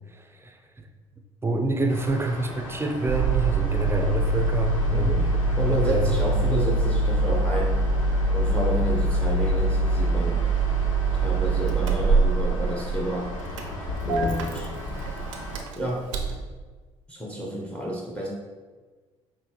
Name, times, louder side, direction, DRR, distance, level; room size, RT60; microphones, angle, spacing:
voice 1, 0.1-0.9 1.4-5.4 5.7-6.2, right 2 dB, 15° right, 5 dB, 0.5 m, -28 dB
sound 1, 1.9-15.6, left 1 dB, 85° left, 0.7 m, -37 dB
Engine starting, 3.1-16.4, right 2 dB, 80° right, 0.5 m, -24 dB
voice 2, 4.9-5.3 5.5-7.8 8.3-10.5 11.1-13.3 14.1-14.7 15.7-16.1 17.1-18.3, right 1 dB, 5° left, -2 dB, 0.9 m, -30 dB
5.4 x 2.6 x 3.0 m, 1.4 s
hypercardioid pair, 55°, 16 cm